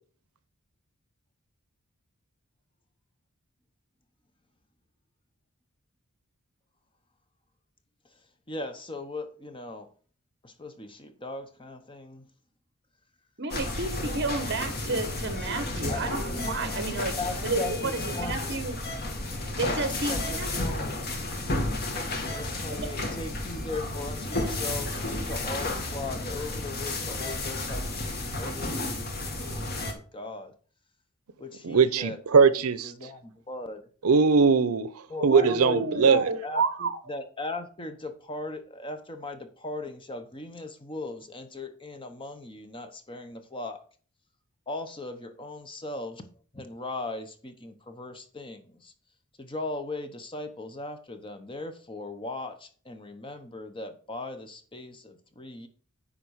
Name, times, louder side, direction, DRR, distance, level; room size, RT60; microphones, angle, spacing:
voice 1, 8.5-9.9 10.4-12.2 15.9-16.0 17.2-18.5 19.7-21.0 22.2-30.5 31.4-32.4 32.8-33.8 35.1-43.8 44.7-46.2 46.5-48.9 49.4-55.7, left 2 dB, 25° left, 0.9 m, -38 dB
voice 2, 13.4-18.9 19.6-20.8 22.7-23.1 35.2-37.0, right 3 dB, 50° right, 1.4 m, -31 dB
sound 1, 13.5-29.9, left 2 dB, 45° left, 1.7 m, -32 dB
voice 3, 31.6-33.1 34.0-34.9 35.2-36.3, right 5 dB, 80° right, 0.6 m, -21 dB
10.5 x 3.8 x 6.4 m
head